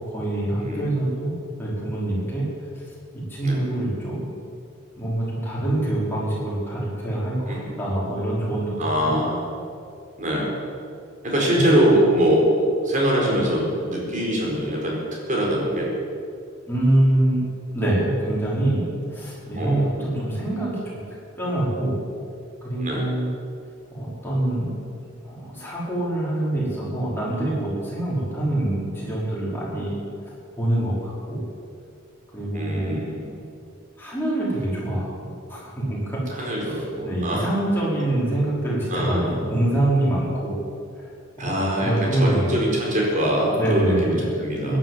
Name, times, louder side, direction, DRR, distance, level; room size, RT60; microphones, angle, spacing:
voice 1, 0.1-1.3 1.6-2.5 3.1-4.3 5.0-8.8 9.0-9.1 11.5-11.8 16.7-17.4 17.7-21.0 21.4-22.0 22.6-23.3 23.9-24.8 25.2-30.0 30.6-31.4 32.3-33.0 34.0-36.2 36.6-36.7 37.0-40.5 41.4-42.5 43.6-44.4 44.6-44.8, right 1 dB, 10° left, -7 dB, 5.1 m, -25 dB
voice 2, 0.6-0.9 3.4-3.6 7.5-7.7 8.8-9.5 10.2-10.5 11.2-15.9 19.6-20.2 22.8-23.0 32.5-33.3 36.3-37.5 38.9-39.5 41.4-44.8, right 1 dB, 40° right, -2 dB, 4.5 m, -23 dB
16.5 x 11.0 x 7.5 m, 2.4 s
head